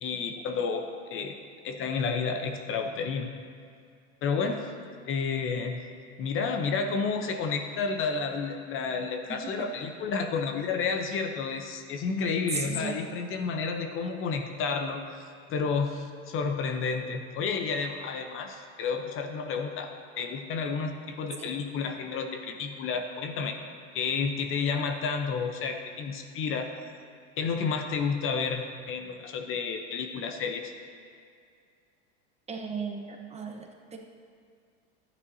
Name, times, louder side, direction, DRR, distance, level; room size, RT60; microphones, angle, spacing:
voice 1, 0.0-0.8 1.1-1.3 1.6-3.3 4.2-4.7 5.1-5.9 6.2-15.0 15.5-19.9 20.2-23.6 23.9-26.7 27.4-30.7, left 5 dB, 40° left, 5 dB, 0.8 m, -31 dB
voice 2, 9.3-9.7 12.5-13.2 21.4-21.5 32.5-34.0, right 5 dB, 20° right, 2 dB, 1.0 m, -36 dB
12.0 x 9.4 x 2.8 m, 2.2 s
hypercardioid pair, 100°, 32 cm